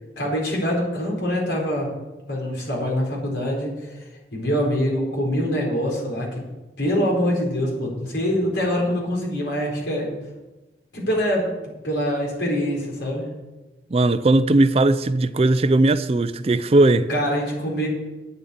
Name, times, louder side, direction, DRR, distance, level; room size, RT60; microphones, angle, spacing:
voice 1, 0.2-1.9 2.3-4.0 4.3-6.3 6.8-10.1 10.9-13.3 17.1-17.9, equal, 85° left, 4.5 m, -24 dB
voice 2, 13.9-17.1, right 2 dB, 35° right, 0.4 m, -18 dB
9.2 x 7.3 x 8.7 m
head